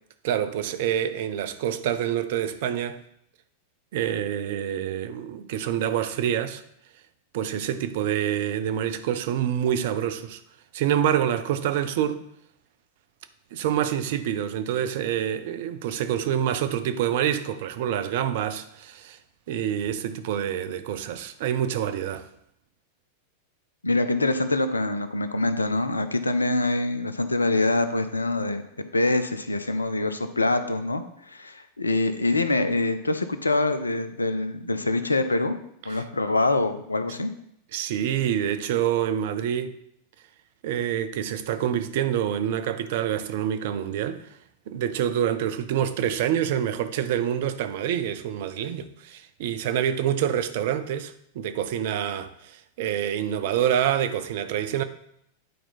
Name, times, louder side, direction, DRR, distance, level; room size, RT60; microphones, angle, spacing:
voice 1, 0.2-3.0 3.9-6.6 7.3-10.4 10.7-12.2 13.5-19.2 19.5-22.2 35.9-36.0 37.7-39.7 40.6-44.3 44.7-54.8, right 10 dB, 50° right, 0.6 m, -27 dB
voice 2, 23.8-28.6 28.9-35.6 35.9-37.3, left 2 dB, 80° left, 0.6 m, -25 dB
9.3 x 4.4 x 4.2 m
figure-of-eight pair, 90°, 0 cm